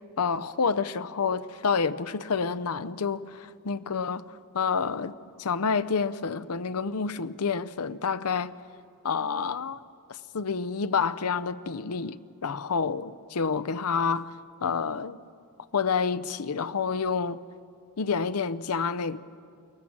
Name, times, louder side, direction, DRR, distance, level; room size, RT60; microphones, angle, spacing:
voice 1, 0.2-4.2 4.5-8.5 9.0-9.8 10.1-14.3 14.6-15.2 15.7-17.4 18.0-19.2, left 5 dB, 80° left, 0.7 m, -28 dB
23.5 x 19.5 x 7.4 m
head